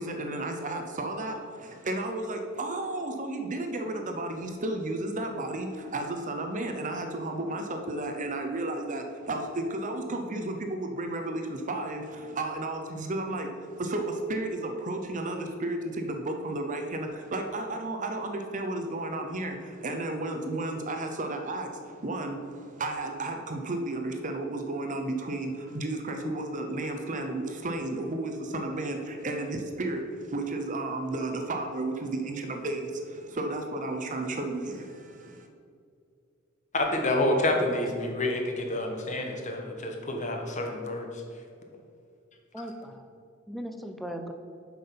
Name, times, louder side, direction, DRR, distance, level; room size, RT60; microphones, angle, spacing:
voice 1, 0.0-35.5, right 2 dB, 40° right, 4 dB, 0.7 m, -33 dB
voice 2, 36.7-41.1, left 1 dB, 35° left, 3 dB, 1.2 m, -28 dB
voice 3, 37.6-38.1 42.5-43.1 43.5-44.3, equal, ahead, 5 dB, 0.6 m, -38 dB
7.7 x 6.0 x 5.6 m, 2.4 s
head